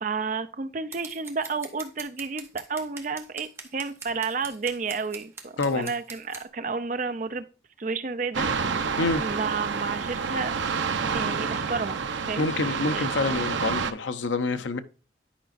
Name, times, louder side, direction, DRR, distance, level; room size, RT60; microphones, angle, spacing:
voice 1, 0.0-7.4 7.8-8.5 9.2-10.5 11.1-12.0 12.3-13.1, right 4 dB, 40° right, 0.5 m, -31 dB
Scissors, 0.9-6.4, right 4 dB, 15° right, 0.8 m, -42 dB
voice 2, 5.6-5.9 9.0-9.2 12.4-14.8, left 3 dB, 80° left, 0.6 m, -27 dB
sound 1, 8.3-13.9, right 5 dB, 80° right, 0.6 m, -28 dB
10.0 x 5.0 x 2.5 m
head